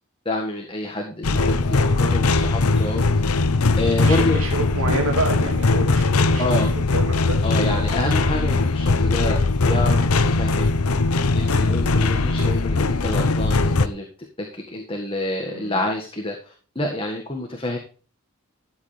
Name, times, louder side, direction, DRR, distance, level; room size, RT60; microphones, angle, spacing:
voice 1, 0.2-3.2 3.8-4.4 6.4-6.7 7.4-9.4 9.6-10.9 11.3-14.0 14.4-17.8, left 1 dB, 25° left, 1 dB, 1.7 m, -28 dB
sound 1, 1.2-13.9, left 3 dB, 85° left, 0.8 m, -20 dB
voice 2, 4.0-7.4 7.7-7.9 15.5-15.8, right 2 dB, 75° right, 2 dB, 2.1 m, -28 dB
13.5 x 8.0 x 3.3 m, 0.38 s
head